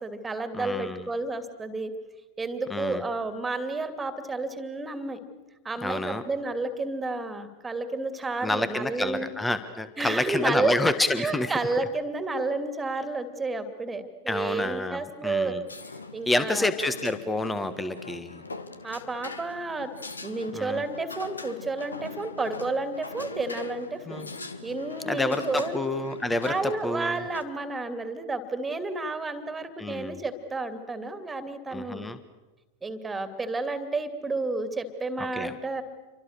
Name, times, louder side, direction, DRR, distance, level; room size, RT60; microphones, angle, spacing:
voice 1, 0.0-1.9 2.4-5.2 5.6-9.3 10.0-15.5 16.1-16.7 18.8-19.9 20.2-24.3 24.6-25.8 26.4-32.1 32.8-35.8, right 3 dB, 10° right, 9 dB, 2.7 m, -31 dB
voice 2, 0.5-1.0 2.7-3.0 5.8-6.2 8.4-11.5 14.3-15.6 16.3-18.4 20.5-20.8 24.1-24.3 25.1-27.2 29.8-30.2 31.7-32.2 35.2-35.5, left 2 dB, 10° left, 12 dB, 1.5 m, -28 dB
sound 1, 15.7-27.4, left 3 dB, 75° left, 1.8 m, -42 dB
29.0 x 24.5 x 6.8 m, 1.1 s
figure-of-eight pair, 90°, 0 cm